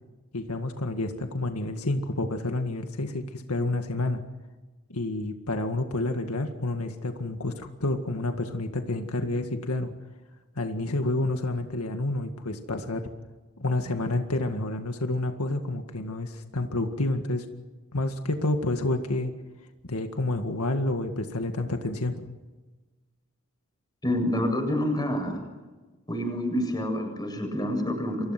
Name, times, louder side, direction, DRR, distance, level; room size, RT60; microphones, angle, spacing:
voice 1, 0.3-4.2 4.9-9.9 10.6-13.0 13.6-17.4 17.9-19.3 19.9-22.3, left 2 dB, 90° left, 6 dB, 2.0 m, -29 dB
voice 2, 24.0-25.4 26.1-28.3, left 1 dB, 20° left, 3 dB, 7.6 m, -27 dB
29.5 x 25.0 x 6.1 m, 1.2 s
head